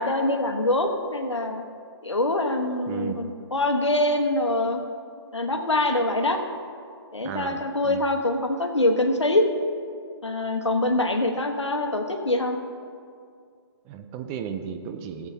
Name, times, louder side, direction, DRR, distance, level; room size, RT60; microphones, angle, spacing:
voice 1, 0.0-1.6 2.0-4.8 5.3-6.4 7.1-9.5 10.2-12.6, left 2 dB, 90° left, 4 dB, 1.3 m, -24 dB
voice 2, 2.9-3.3 7.2-8.0 13.9-15.3, right 8 dB, 20° right, 6 dB, 0.5 m, -34 dB
17.5 x 8.0 x 2.8 m, 2.2 s
figure-of-eight pair, 140°, 15 cm